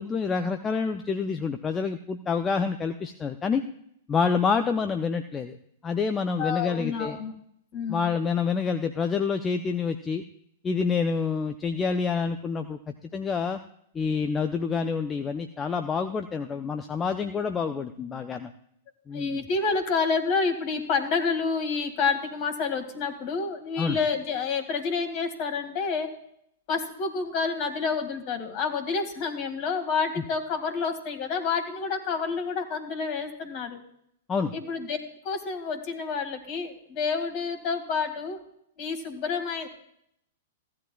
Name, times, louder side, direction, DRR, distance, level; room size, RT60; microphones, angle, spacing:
voice 1, 0.0-3.6 4.1-5.6 5.8-7.2 7.9-10.2 10.6-12.8 13.1-13.6 13.9-18.5 19.1-19.4 23.8-24.0 34.3-34.5, left 5 dB, 20° left, 7 dB, 0.5 m, -27 dB
voice 2, 6.4-7.3 7.7-8.1 19.1-26.1 26.7-33.8 34.5-35.0 35.2-38.4 38.8-39.7, left 5 dB, 40° left, 5 dB, 2.0 m, -29 dB
16.0 x 10.5 x 2.3 m, 0.71 s
figure-of-eight pair, 100°, 0 cm